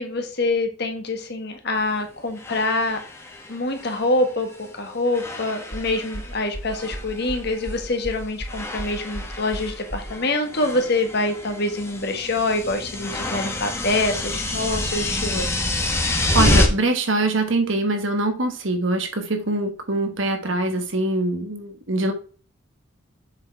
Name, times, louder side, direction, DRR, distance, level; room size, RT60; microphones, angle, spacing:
voice 1, 0.0-3.0 3.5-4.5 4.7-15.7, left 2 dB, 50° left, 5 dB, 1.4 m, -25 dB
sound 1, 1.8-1.9 2.4-4.8 5.1-6.4 6.7-7.8 8.5-16.7, left 1 dB, 10° left, 1.1 m, -27 dB
sound 2, 5.7-10.1, right 1 dB, 10° right, 1.4 m, -34 dB
voice 2, 16.0-22.1, right 2 dB, 70° right, 6 dB, 1.3 m, -23 dB
7.2 x 4.4 x 4.5 m, 0.38 s
head